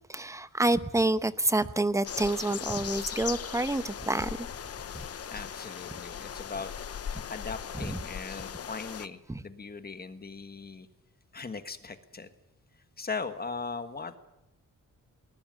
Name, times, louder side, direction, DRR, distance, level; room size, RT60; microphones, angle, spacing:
voice 1, 0.1-4.5 4.9-5.1 7.9-8.0 9.3-9.4, right 2 dB, 10° right, 13 dB, 0.8 m, -28 dB
sound 1, 2.0-9.1, left 8 dB, 50° left, 0.8 m, -38 dB
voice 2, 5.3-6.7 7.3-10.9 11.3-12.3 13.0-14.2, left 4 dB, 30° left, 10 dB, 1.5 m, -39 dB
20.5 x 20.0 x 9.1 m, 0.89 s
wide cardioid pair, 160°, 32 cm